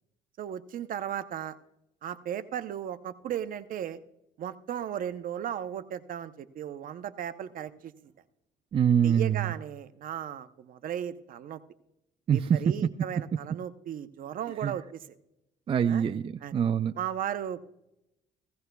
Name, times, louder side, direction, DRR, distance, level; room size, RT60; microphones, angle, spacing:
voice 1, 0.4-1.6 2.0-4.0 4.4-8.1 9.0-11.6 12.3-15.1 15.9-16.0 16.4-16.5 17.0-17.6, right 10 dB, 55° right, 11 dB, 0.8 m, -36 dB
voice 2, 8.7-9.5 12.3-12.6 14.6-14.7 15.7-17.0, right 8 dB, 30° right, 10 dB, 0.4 m, -24 dB
16.5 x 16.5 x 2.3 m, 0.88 s
cardioid pair, 110°, 17 cm